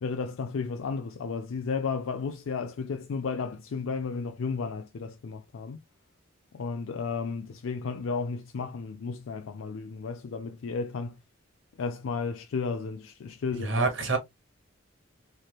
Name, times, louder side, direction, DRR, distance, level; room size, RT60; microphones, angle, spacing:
voice 1, 0.0-5.8 6.5-11.2 11.8-14.1, left 5 dB, 85° left, 0.4 m, -33 dB
voice 2, 13.5-14.2, right 3 dB, 70° right, 1.2 m, -27 dB
3.3 x 2.9 x 2.3 m
head